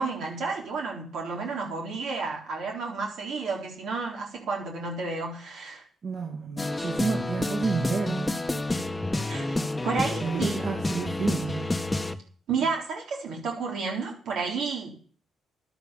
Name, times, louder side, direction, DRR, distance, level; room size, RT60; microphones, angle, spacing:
voice 1, 0.0-5.8 9.3-9.6 9.8-10.6 12.5-15.0, right 4 dB, 75° right, 0 dB, 3.6 m, -31 dB
voice 2, 6.0-8.5 10.2-11.7, right 5 dB, 50° right, 2 dB, 2.4 m, -30 dB
sound 1, 6.6-12.2, left 2 dB, 15° left, 1.1 m, -29 dB
11.5 x 8.9 x 6.9 m, 0.44 s
cardioid pair, 90°, 0 cm